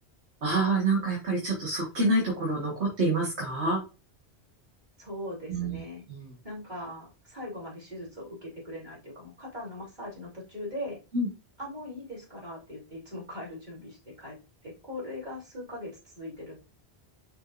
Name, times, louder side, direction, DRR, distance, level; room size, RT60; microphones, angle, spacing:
voice 1, 0.4-3.8 5.5-5.8 6.1-6.3 11.1-11.3, right 2 dB, 85° right, -3 dB, 2.1 m, -27 dB
voice 2, 5.0-6.0 6.4-11.0 11.6-14.4 14.6-16.6, left 1 dB, 45° right, -5 dB, 3.6 m, -40 dB
6.2 x 6.0 x 2.6 m, 0.31 s
omnidirectional pair, 1.1 m